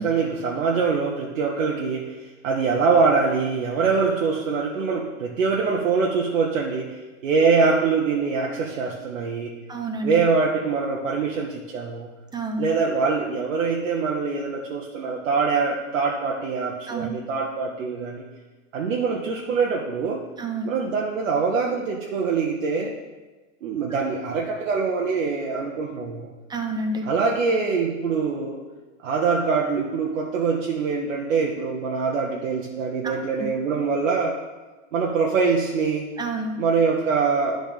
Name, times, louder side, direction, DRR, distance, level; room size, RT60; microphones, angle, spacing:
voice 1, 0.0-9.6 10.0-12.1 12.6-18.2 18.7-20.2 20.6-22.9 23.6-26.3 27.0-28.6 29.0-34.4 34.9-36.1 36.6-37.6, right 5 dB, 80° right, -2 dB, 1.2 m, -24 dB
voice 2, 9.7-10.1 12.3-12.7 16.9-17.1 20.4-20.7 23.9-24.0 26.5-27.1 33.0-33.2 36.2-36.6, right 2 dB, 10° right, 3 dB, 1.0 m, -29 dB
11.5 x 3.9 x 5.1 m, 1.3 s
hypercardioid pair, 115°, 38 cm